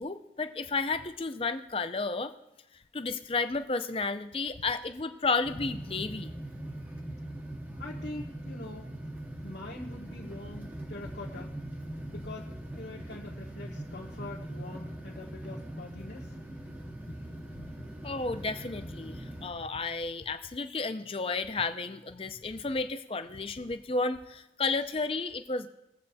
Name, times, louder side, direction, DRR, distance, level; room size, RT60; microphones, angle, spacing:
voice 1, 0.0-2.3 2.7-6.3 17.6-17.7 18.0-25.7, left 3 dB, 30° left, 9 dB, 0.5 m, -32 dB
sound 1, 5.4-19.5, right 1 dB, 10° right, 0.7 m, -41 dB
voice 2, 7.7-8.9 9.4-11.5 12.1-16.4 17.8-17.9, left 2 dB, 70° left, -4 dB, 1.2 m, -44 dB
21.0 x 7.7 x 2.7 m, 0.88 s
head